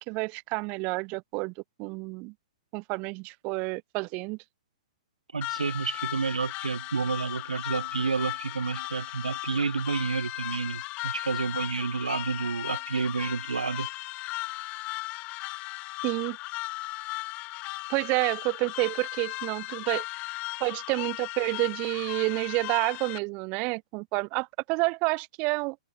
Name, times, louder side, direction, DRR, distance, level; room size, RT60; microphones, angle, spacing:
voice 1, 0.1-1.5 1.8-2.3 2.7-4.4 16.0-16.4 17.9-20.0 20.6-25.8, right 28 dB, 35° right, 1.6 m, -29 dB
voice 2, 5.3-13.9, right 4 dB, 90° right, 3.1 m, -30 dB
sound 1, 5.4-23.2, left 21 dB, 35° left, 2.1 m, -36 dB
hypercardioid pair, 125°, 4 cm